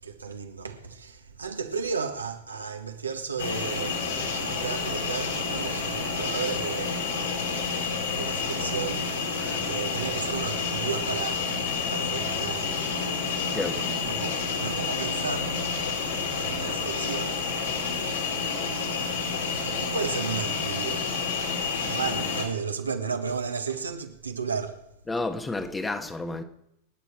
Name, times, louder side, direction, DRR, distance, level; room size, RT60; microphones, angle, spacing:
voice 1, 0.0-7.0 7.8-11.5 11.9-12.9 14.0-15.6 16.4-17.4 18.8-18.9 19.8-21.1 21.8-24.8, right 5 dB, 75° right, 1.8 m, -34 dB
sound 1, 3.4-22.5, left 5 dB, 70° left, 3.8 m, -29 dB
voice 2, 25.1-26.4, left 2 dB, 10° left, 1.5 m, -30 dB
27.0 x 10.0 x 4.6 m
figure-of-eight pair, 90°, 0 cm